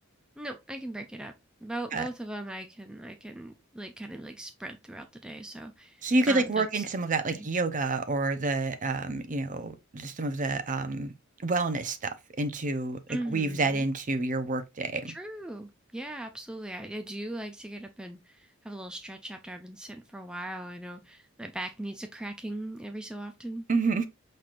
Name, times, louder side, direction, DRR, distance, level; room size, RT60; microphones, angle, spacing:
voice 1, 0.4-1.3 1.6-6.8 7.3-7.5 13.1-13.8 15.1-23.6, right 1 dB, 5° right, 0.3 m, -39 dB
voice 2, 6.0-11.1 11.4-15.1 23.7-24.1, right 3 dB, 40° right, 0.6 m, -28 dB
5.7 x 3.3 x 2.5 m
head